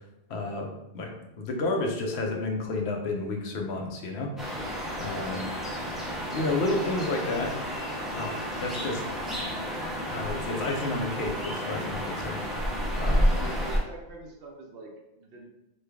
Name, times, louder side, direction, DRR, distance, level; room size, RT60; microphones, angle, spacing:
voice 1, 0.3-4.3 5.0-5.5 6.3-7.6 8.1-9.0 9.7-12.4 13.0-13.5, left 2 dB, 80° left, 2 dB, 0.9 m, -31 dB
sound 1, 4.4-13.8, equal, ahead, 0.5 m, -31 dB
voice 2, 5.2-5.6 13.0-15.5, right 3 dB, 65° right, 0 dB, 0.8 m, -45 dB
3.1 x 2.3 x 3.4 m, 0.90 s
omnidirectional pair, 1.1 m